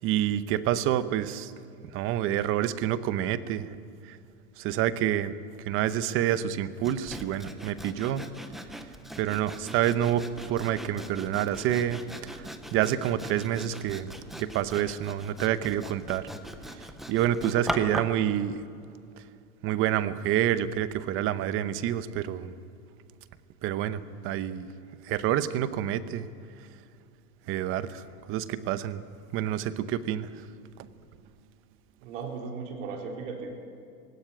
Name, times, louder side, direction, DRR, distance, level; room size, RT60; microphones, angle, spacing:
voice 1, 0.0-1.5 1.9-3.8 4.0-4.2 4.6-8.3 9.2-14.1 14.4-16.3 16.8-18.6 19.6-22.5 23.6-24.7 25.0-26.3 27.5-29.0 29.3-30.5 30.8-30.9, right 11 dB, 30° right, 14 dB, 0.8 m, -28 dB
Sawing, 6.8-18.2, equal, ahead, 0.4 m, -40 dB
voice 2, 32.0-33.6, right 4 dB, 55° right, 1 dB, 4.3 m, -36 dB
18.5 x 17.0 x 10.0 m, 2.5 s
supercardioid pair, 140°, 45 cm